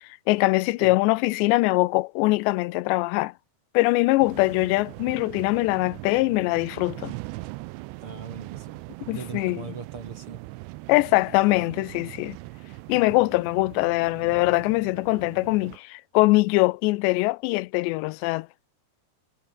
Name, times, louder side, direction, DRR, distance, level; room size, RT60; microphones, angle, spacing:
voice 1, 0.0-3.3 3.7-7.1 9.1-9.7 10.9-12.4 12.9-18.5, left 22 dB, 90° left, 2.8 m, -22 dB
sound 1, 4.2-15.8, right 22 dB, 85° right, 2.8 m, -41 dB
voice 2, 8.0-8.8 9.1-10.4, right 5 dB, 40° right, 2.4 m, -39 dB
omnidirectional pair, 5.0 m